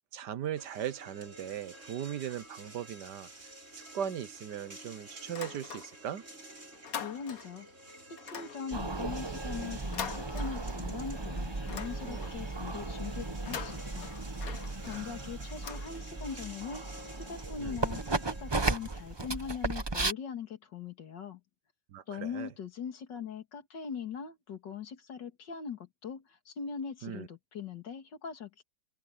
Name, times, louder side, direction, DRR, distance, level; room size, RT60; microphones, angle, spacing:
voice 1, 0.1-6.2 12.0-12.3 14.8-15.2 17.6-17.8 21.9-22.5 27.0-27.3, right 9 dB, 75° right, 1.6 m, -39 dB
sound 1, 0.5-20.1, right 1 dB, 40° right, 5.7 m, -51 dB
sound 2, 5.2-6.2 6.5-7.7 8.2-11.0 11.4-12.5 13.3-16.4, left 7 dB, 55° left, 1.7 m, -44 dB
voice 2, 7.0-7.7 8.1-14.1 14.9-21.4 22.1-28.6, left 6 dB, 85° left, 2.6 m, -41 dB
sound 3, 8.7-20.1, right 3 dB, 20° right, 0.7 m, -36 dB
open air
omnidirectional pair, 1.9 m